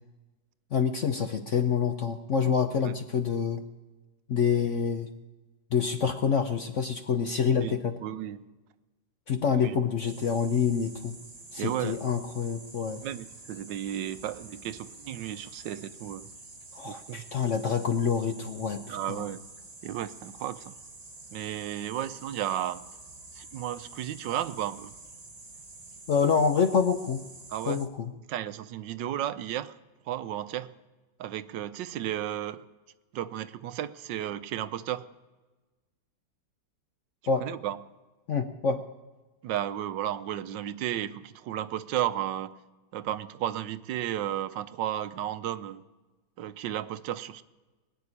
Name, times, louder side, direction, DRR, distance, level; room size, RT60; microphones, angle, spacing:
voice 1, 0.7-3.6 4.3-5.1 5.7-7.9 9.3-11.2 11.5-13.0 16.7-19.3 26.1-27.2 27.7-28.1 37.3-37.5 38.3-38.8, left 6 dB, 55° left, 0.8 m, -27 dB
voice 2, 7.6-8.5 9.6-9.8 11.6-12.0 13.0-16.3 16.8-17.3 18.9-19.4 19.8-20.7 21.3-22.9 23.3-25.0 27.5-27.8 28.3-29.7 30.1-30.7 31.2-32.6 33.1-35.0 37.4-37.8 39.4-42.5 42.9-45.8 46.4-47.4, right 11 dB, 75° right, 1.3 m, -33 dB
sound 1, 10.0-27.9, right 2 dB, 20° right, 1.5 m, -48 dB
21.0 x 7.0 x 9.8 m
omnidirectional pair, 2.0 m